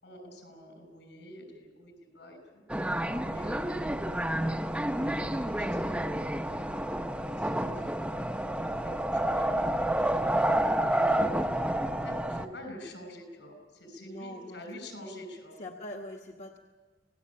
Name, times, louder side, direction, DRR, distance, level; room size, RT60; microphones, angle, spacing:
voice 1, 0.0-2.6 3.2-4.6 5.3-7.0 7.3-11.5 11.9-15.6, left 1 dB, 70° left, 6 dB, 6.2 m, -48 dB
sound 1, 2.7-12.5, right 1 dB, 5° right, 0.7 m, -29 dB
voice 2, 14.0-14.6 15.6-16.6, left 1 dB, 40° left, 2 dB, 1.2 m, -43 dB
27.0 x 18.5 x 8.6 m, 1.4 s
head